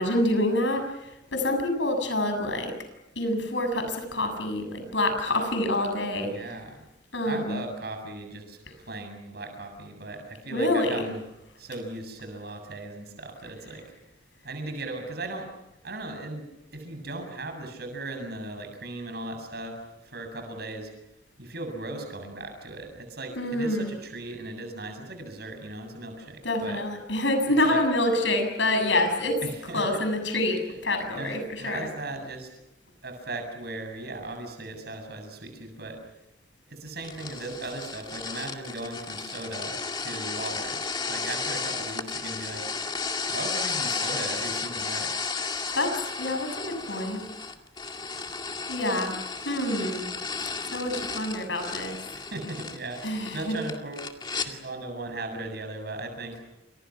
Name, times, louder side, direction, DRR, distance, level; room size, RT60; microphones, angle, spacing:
voice 1, 0.0-2.7 3.2-6.3 7.1-7.6 10.5-11.1 23.4-23.9 26.4-29.4 29.7-31.9 45.7-47.2 48.7-49.2 49.5-50.0 50.7-52.0 53.0-53.6 54.4-54.5, left 1 dB, 75° left, 6 dB, 7.2 m, -27 dB
voice 2, 6.2-6.8 7.2-8.6 8.8-11.2 11.6-13.8 14.4-15.5 15.8-16.4 16.7-20.9 21.4-26.8 27.6-27.8 29.4-29.8 31.2-32.5 33.0-36.0 36.7-40.8 41.1-42.7 43.3-45.2 51.0-51.2 52.1-54.1 54.4-56.4, right 2 dB, 55° right, 5 dB, 7.5 m, -37 dB
sound 1, 37.0-54.5, left 4 dB, 25° left, 2.2 m, -33 dB
29.5 x 28.0 x 6.0 m, 0.87 s
head